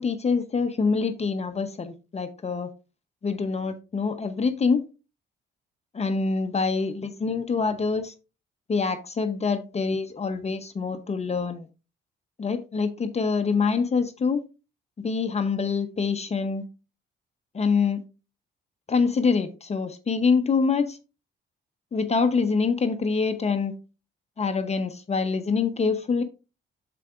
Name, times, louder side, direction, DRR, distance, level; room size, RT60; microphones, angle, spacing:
voice 1, 0.0-2.7 3.2-4.8 5.9-8.1 8.7-11.7 12.4-14.4 15.0-16.6 17.5-18.0 18.9-21.0 21.9-23.7 24.4-26.2, left 5 dB, 35° left, 0.8 m, -25 dB
8.2 x 6.8 x 2.4 m
cardioid pair, 90°, 20 cm